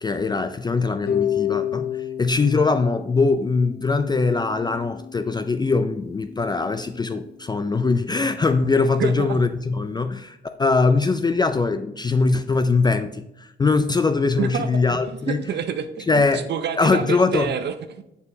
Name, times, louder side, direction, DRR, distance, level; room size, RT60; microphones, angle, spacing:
voice 1, 0.0-15.4 16.1-16.5 16.8-17.5, left 4 dB, 20° left, 9 dB, 0.4 m, -22 dB
Harp, 1.1-7.1, left 10 dB, 50° left, 0.8 m, -31 dB
voice 2, 9.0-9.4 14.4-15.0 15.2-18.0, right 7 dB, 60° right, 9 dB, 0.5 m, -28 dB
6.8 x 6.8 x 2.8 m, 0.85 s
cardioid pair, 90°, 20 cm